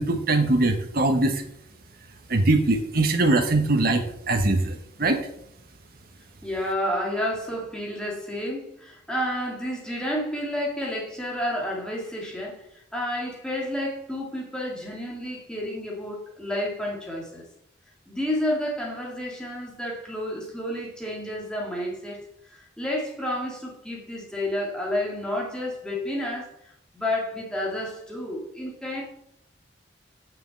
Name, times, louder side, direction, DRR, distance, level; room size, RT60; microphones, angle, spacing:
voice 1, 0.0-1.4 2.3-5.2, right 2 dB, 55° right, 1.0 m, -22 dB
voice 2, 6.4-17.4 18.1-29.0, left 1 dB, 5° left, 2.6 m, -30 dB
6.7 x 6.6 x 7.3 m
head